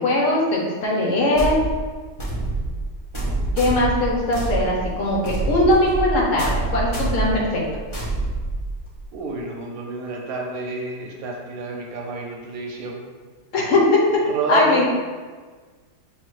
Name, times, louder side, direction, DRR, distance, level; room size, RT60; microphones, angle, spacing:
voice 1, 0.0-1.6 3.5-7.6 13.5-14.2 14.5-14.9, left 1 dB, 60° left, -3 dB, 1.0 m, -20 dB
sound 1, 1.3-9.0, right 2 dB, 35° left, 0.5 m, -26 dB
voice 2, 9.1-13.1 14.3-14.9, right 2 dB, 65° right, 0 dB, 1.1 m, -29 dB
5.6 x 2.3 x 3.0 m, 1.4 s
omnidirectional pair, 1.8 m